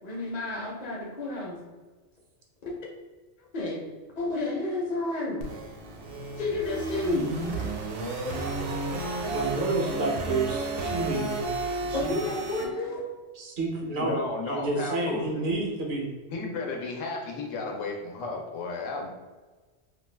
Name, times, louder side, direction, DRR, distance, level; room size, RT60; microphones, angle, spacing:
voice 1, 0.0-1.6 2.7-2.8 3.5-3.8 4.1-5.5 6.3-7.4 11.9-13.0, left 2 dB, 40° left, -3 dB, 0.7 m, -30 dB
sound 1, 5.4-12.6, right 2 dB, 75° right, 0.9 m, -32 dB
voice 2, 9.3-11.6 11.8-12.2 13.4-16.1, right 2 dB, 60° right, 0 dB, 0.6 m, -30 dB
voice 3, 14.0-15.5 16.3-19.1, left 3 dB, 85° left, 1 dB, 1.0 m, -34 dB
2.5 x 2.2 x 3.2 m, 1.3 s
omnidirectional pair, 1.3 m